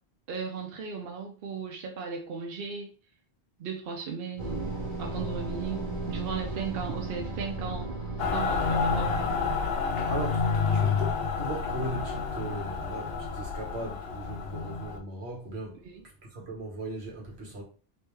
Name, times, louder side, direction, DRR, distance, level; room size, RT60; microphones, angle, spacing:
voice 1, 0.3-2.9 3.6-4.7 5.0-9.1 15.8-16.0, right 5 dB, 65° right, 0.8 m, -36 dB
sound 1, 4.4-9.6, right 2 dB, 30° right, 1.0 m, -35 dB
Mechanical fan, 8.2-15.0, left 5 dB, 70° left, 0.8 m, -29 dB
voice 2, 10.0-15.8 16.3-17.6, right 1 dB, 85° right, 1.5 m, -38 dB
3.3 x 2.9 x 3.0 m
omnidirectional pair, 1.1 m